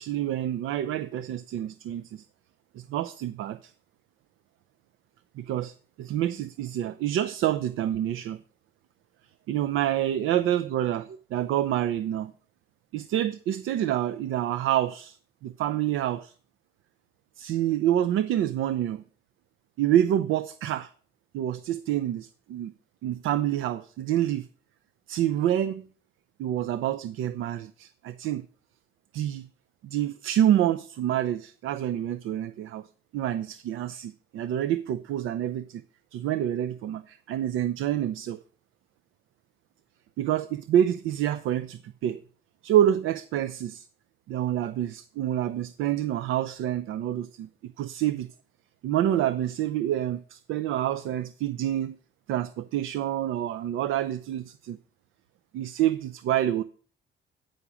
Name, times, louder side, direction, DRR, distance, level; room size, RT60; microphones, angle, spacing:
voice 1, 0.0-2.2 2.7-3.7 5.4-8.4 9.5-12.3 12.9-15.2 15.4-16.3 17.4-19.0 19.8-20.9 21.3-22.7 23.0-24.5 25.1-25.9 26.4-28.5 29.1-29.5 29.8-32.9 33.1-35.8 36.1-38.4 40.2-42.2 42.6-43.9 44.3-48.3 48.8-52.0 52.3-54.8 55.5-56.6, right 11 dB, 85° right, 0.5 m, -27 dB
9.0 x 4.9 x 7.0 m
cardioid pair, 90°, 20 cm